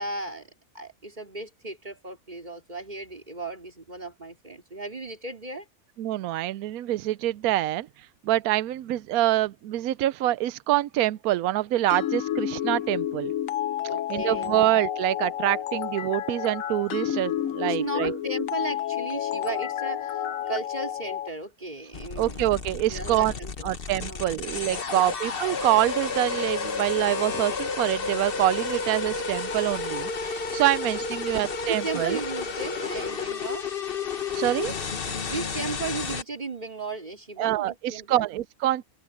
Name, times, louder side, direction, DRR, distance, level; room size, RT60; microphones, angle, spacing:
voice 1, 0.0-5.7 13.9-14.7 17.6-22.4 22.9-23.7 24.0-24.4 24.9-25.1 30.8-31.4 31.7-33.7 35.2-38.3, right 3 dB, 30° right, 3.7 m, -36 dB
voice 2, 6.0-7.9 8.2-13.3 14.1-18.2 22.2-23.3 23.6-32.2 34.3-34.7 37.4-38.8, right 14 dB, 80° right, 1.0 m, -26 dB
sound 1, 11.9-21.3, left 11 dB, 70° left, 1.1 m, -30 dB
sound 2, 21.9-36.2, left 5 dB, 40° left, 1.3 m, -31 dB
omnidirectional pair, 1.5 m